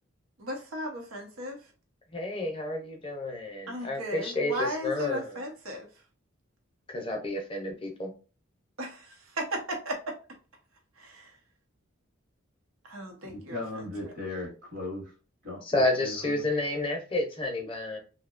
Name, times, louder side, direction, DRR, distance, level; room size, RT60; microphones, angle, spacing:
voice 1, 0.4-1.6 3.7-5.9 8.8-10.1 11.0-11.3 12.8-14.1, equal, 85° right, 0.8 m, -36 dB
voice 2, 2.1-5.4 6.9-8.1 15.7-18.0, left 2 dB, 25° left, 0.5 m, -30 dB
voice 3, 13.2-15.1 15.4-16.4, left 2 dB, 40° right, 0.9 m, -38 dB
2.7 x 2.1 x 2.4 m
head